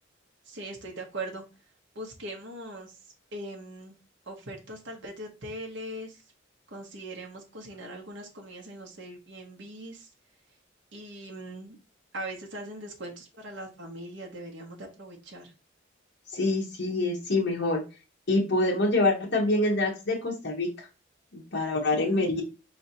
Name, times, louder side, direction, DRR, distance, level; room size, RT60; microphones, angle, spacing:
voice 1, 0.5-1.4 1.9-3.0 3.3-3.9 4.3-6.2 6.7-10.1 10.9-11.8 12.1-15.5 21.9-22.4, right 1 dB, 65° right, 0 dB, 1.0 m, -40 dB
voice 2, 16.3-17.8 18.3-20.9 21.3-22.4, left 2 dB, 55° left, -2 dB, 1.1 m, -26 dB
4.4 x 3.3 x 2.8 m, 0.30 s
head